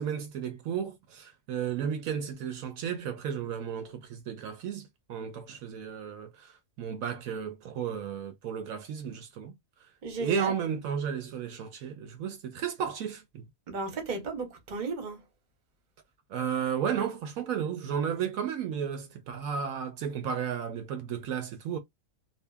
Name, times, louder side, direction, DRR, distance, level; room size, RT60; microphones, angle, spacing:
voice 1, 0.0-9.5 10.2-13.4 16.3-21.8, right 8 dB, 75° right, 1.0 m, -33 dB
voice 2, 10.0-10.5 13.7-15.2, right 3 dB, 40° right, 0.8 m, -34 dB
2.7 x 2.6 x 2.2 m
omnidirectional pair, 1.5 m